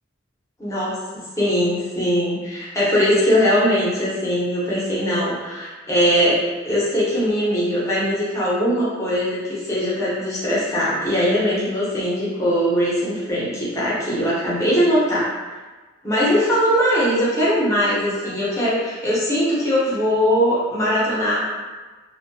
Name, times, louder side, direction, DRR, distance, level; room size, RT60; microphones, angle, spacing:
voice 1, 0.6-1.0 1.4-15.3 16.0-21.4, equal, 15° left, -9 dB, 0.8 m, -20 dB
2.7 x 2.2 x 2.6 m, 1.3 s
head